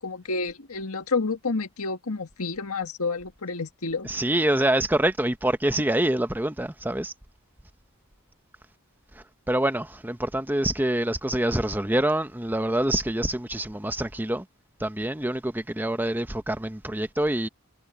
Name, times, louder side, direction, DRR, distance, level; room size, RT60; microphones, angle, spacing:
voice 1, 0.0-4.1, left 4 dB, 80° left, 1.8 m, -29 dB
voice 2, 4.0-7.1 9.5-14.4 14.8-17.5, right 1 dB, 10° right, 0.8 m, -26 dB
head